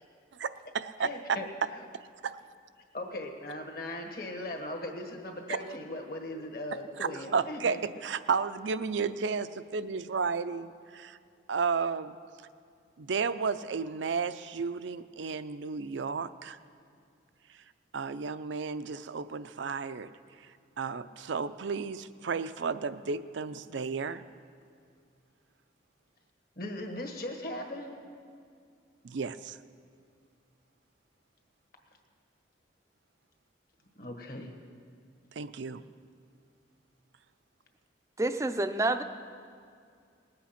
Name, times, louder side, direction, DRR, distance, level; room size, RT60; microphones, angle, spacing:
voice 1, 0.4-1.1 2.2-2.4 7.0-11.2 11.5-12.2 13.0-16.6 17.9-20.1 20.8-24.2 29.0-29.6 35.4-35.8, right 5 dB, 75° right, 12 dB, 0.5 m, -33 dB
voice 2, 1.0-1.5 2.9-7.8 26.6-27.9 34.0-34.5, left 1 dB, 50° left, 4 dB, 1.6 m, -38 dB
voice 3, 38.2-39.0, right 2 dB, 15° right, 9 dB, 0.4 m, -28 dB
20.0 x 8.7 x 5.8 m, 2.3 s
head